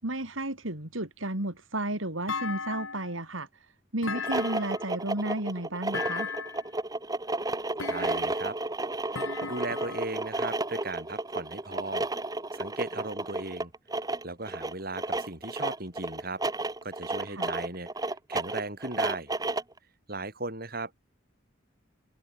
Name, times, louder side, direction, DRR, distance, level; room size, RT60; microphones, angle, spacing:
voice 1, 0.0-3.5 3.9-6.3 17.3-17.5, right 1 dB, 75° right, 4.4 m, -33 dB
Thump thud, 2.3-3.2 4.0-4.9 5.9-6.7 7.8-8.5 9.2-10.2, left 5 dB, 85° left, 4.1 m, -36 dB
sound 1, 4.1-19.8, right 2 dB, 20° right, 1.7 m, -32 dB
voice 2, 7.9-8.6 9.5-12.1 12.5-13.7 14.2-16.4 16.8-19.3 20.1-20.9, right 2 dB, 45° right, 6.4 m, -37 dB
head